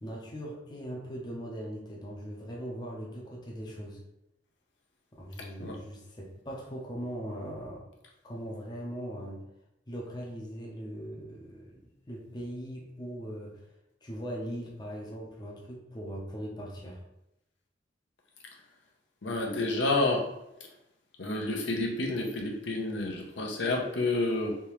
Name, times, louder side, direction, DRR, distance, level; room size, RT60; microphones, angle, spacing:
voice 1, 0.0-4.0 5.1-7.8 8.2-9.4 9.9-13.6 14.0-17.0, equal, 25° left, -2 dB, 0.7 m, -40 dB
voice 2, 19.2-20.3 21.2-24.6, left 2 dB, 70° left, 0 dB, 0.7 m, -29 dB
3.5 x 2.8 x 3.0 m, 0.87 s
head